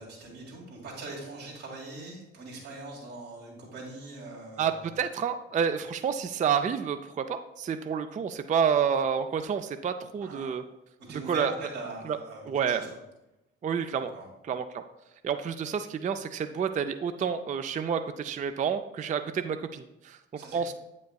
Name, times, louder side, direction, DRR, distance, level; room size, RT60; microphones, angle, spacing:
voice 1, 0.0-4.9 10.2-10.6 11.0-12.9 14.1-14.3 20.4-20.7, right 2 dB, 80° right, -4 dB, 1.8 m, -41 dB
voice 2, 4.6-10.6 11.3-11.5 12.1-12.2 12.5-12.9 13.6-14.1 14.5-14.8 15.2-20.2 20.5-20.7, right 7 dB, 25° right, 9 dB, 0.4 m, -29 dB
7.9 x 5.2 x 2.3 m, 0.93 s
hypercardioid pair, 40°, 31 cm